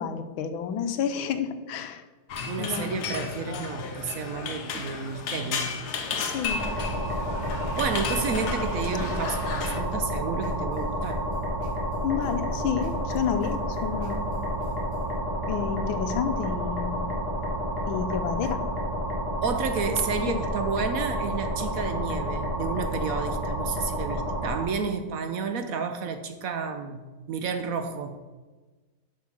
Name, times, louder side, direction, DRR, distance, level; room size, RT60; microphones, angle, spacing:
voice 1, 0.0-2.0 2.6-3.1 6.2-6.7 12.0-14.2 15.5-17.1 17.9-18.6, left 8 dB, 80° left, 9 dB, 1.5 m, -30 dB
sound 1, 2.3-9.8, left 5 dB, 60° left, 1.4 m, -34 dB
voice 2, 2.5-5.7 7.8-11.3 19.4-28.2, right 5 dB, 70° right, 7 dB, 0.8 m, -31 dB
sound 2, 6.4-24.6, equal, 10° left, 2.3 m, -30 dB
sound 3, 6.7-15.2, left 1 dB, 45° right, 4.0 m, -44 dB
7.4 x 6.4 x 6.0 m, 1.3 s
omnidirectional pair, 2.2 m